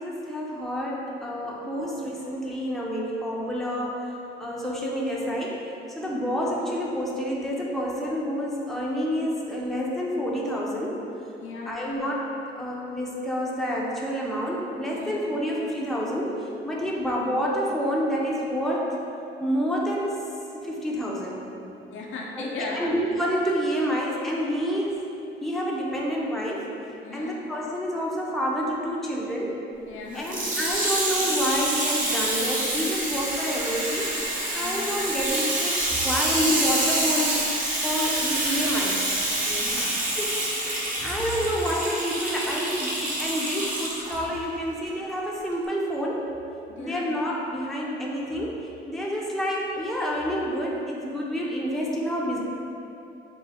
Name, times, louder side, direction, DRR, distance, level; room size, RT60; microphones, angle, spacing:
voice 1, 0.0-5.7 6.0-11.0 11.7-19.0 19.4-20.2 20.5-21.5 22.4-25.0 25.4-26.7 27.1-29.6 30.1-37.5 37.8-39.0 40.0-46.3 46.8-52.4, equal, ahead, -4 dB, 0.6 m, -28 dB
voice 2, 11.4-11.7 14.9-15.2 21.9-22.9 27.0-27.4 29.9-30.3 34.5-34.9 39.4-40.0 46.7-47.1, left 3 dB, 75° left, -3 dB, 0.7 m, -37 dB
Water tap faucet / Sink (filling or washing), 30.2-44.2 44.9-45.0, right 1 dB, 40° right, 1.0 m, -27 dB
3.8 x 2.7 x 4.1 m, 2.8 s
cardioid pair, 90°, 20 cm